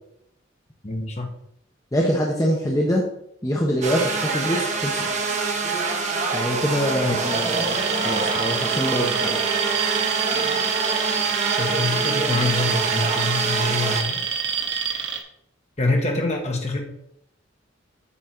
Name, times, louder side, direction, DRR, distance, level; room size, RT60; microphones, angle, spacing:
voice 1, 0.8-1.3 7.0-7.1 11.5-14.3 14.9-15.1 15.8-16.8, left 2 dB, 35° left, 2 dB, 1.3 m, -25 dB
voice 2, 1.9-3.0 3.4-5.1 6.3-9.4, equal, 15° left, -2 dB, 1.0 m, -24 dB
sound 1, 3.8-14.0, right 4 dB, 35° right, 1.0 m, -25 dB
Alarm, 7.2-15.2, right 7 dB, 65° right, 1.1 m, -27 dB
8.5 x 4.0 x 6.0 m, 0.73 s
head